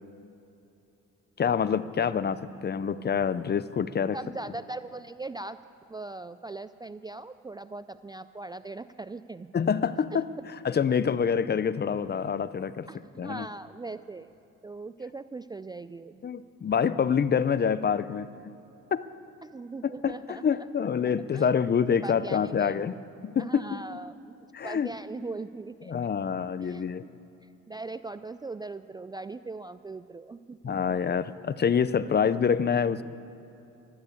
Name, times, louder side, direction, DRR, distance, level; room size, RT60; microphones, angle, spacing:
voice 1, 1.4-4.2 9.5-10.3 10.6-12.9 13.2-13.5 16.2-18.3 18.9-19.0 19.8-22.9 23.2-23.8 24.5-24.9 25.9-27.0 30.6-33.0, left 7 dB, 35° left, 15 dB, 0.6 m, -26 dB
voice 2, 4.1-5.6 5.9-9.5 10.1-10.4 12.9-14.3 14.6-16.2 19.4-20.5 21.3-21.5 22.0-22.8 23.4-24.3 24.6-25.9 26.6-27.1 27.7-30.7, right 3 dB, 15° right, 12 dB, 0.3 m, -40 dB
13.0 x 12.0 x 8.6 m, 2.8 s
cardioid pair, 90°, 30 cm